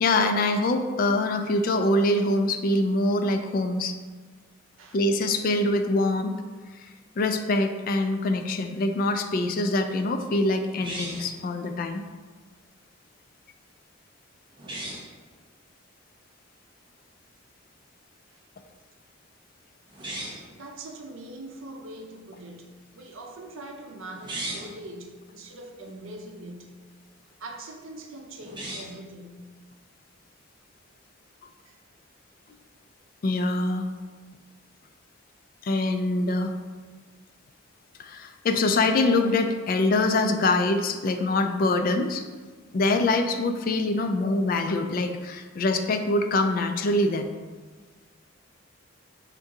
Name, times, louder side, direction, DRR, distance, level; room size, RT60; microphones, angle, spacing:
voice 1, 0.0-3.9 4.9-6.4 6.8-6.9 7.2-12.0 33.2-33.9 35.6-36.5 38.0-42.2 42.7-47.3, left 2 dB, 45° left, 7 dB, 0.3 m, -24 dB
sound 1, 10.8-11.4 14.6-15.1 19.9-20.5 24.1-24.8 28.4-29.0, right 1 dB, 25° right, 0.7 m, -36 dB
voice 2, 20.2-26.8 27.2-29.5 31.6-31.8 41.1-41.2, right 1 dB, 85° right, 2 dB, 0.6 m, -43 dB
3.7 x 2.7 x 4.6 m, 1.4 s
head